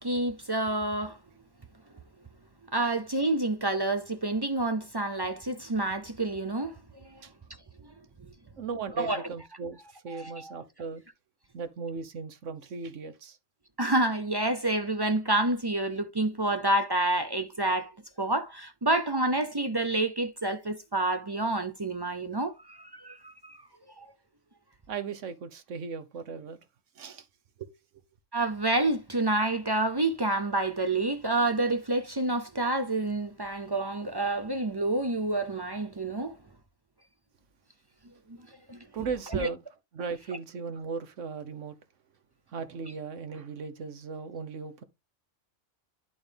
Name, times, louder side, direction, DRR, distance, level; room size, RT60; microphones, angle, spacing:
voice 1, 0.0-1.2 2.7-6.7 9.0-9.3 10.1-10.6 13.8-17.9 18.2-23.6 28.3-36.3 38.7-38.8 39.3-39.5, right 2 dB, 35° right, 0.4 m, -28 dB
voice 2, 8.6-9.8 10.0-11.0 11.5-13.4 24.9-26.6 27.0-27.2 27.6-27.7 38.9-39.6 39.9-41.7 42.5-44.8, right 5 dB, 75° right, 1.3 m, -37 dB
11.0 x 3.9 x 3.4 m
omnidirectional pair, 1.3 m